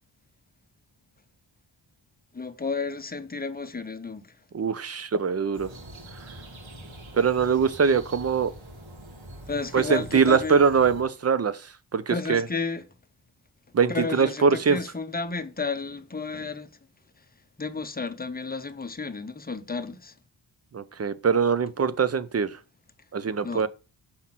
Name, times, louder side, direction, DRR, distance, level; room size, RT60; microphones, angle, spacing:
voice 1, 2.3-4.4 9.5-10.6 12.1-12.9 13.9-16.7 17.2-17.3 17.6-20.2 23.4-23.7, left 4 dB, 20° left, 0.8 m, -32 dB
voice 2, 4.5-5.7 7.1-8.5 9.7-12.5 13.7-14.8 20.7-22.6 23.1-23.7, right 6 dB, 35° right, 0.6 m, -23 dB
sound 1, 5.5-11.0, right 1 dB, 85° right, 2.3 m, -44 dB
5.8 x 4.3 x 5.9 m
cardioid pair, 85°, 44 cm